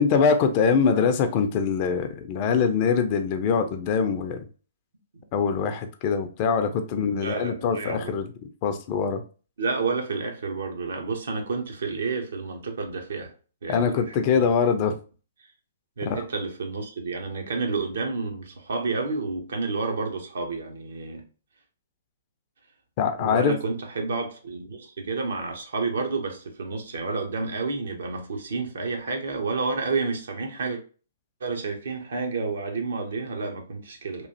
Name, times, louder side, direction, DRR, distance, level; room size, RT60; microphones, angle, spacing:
voice 1, 0.0-4.4 5.3-8.3 8.6-9.2 13.7-15.0 16.1-16.2 23.0-23.5, left 6 dB, 35° left, 0.4 m, -23 dB
voice 2, 7.2-8.1 9.6-13.3 13.6-14.5 16.0-21.2 23.2-30.8 31.4-34.3, right 4 dB, 65° right, 0.7 m, -30 dB
3.0 x 2.4 x 2.6 m
figure-of-eight pair, 120°, 0 cm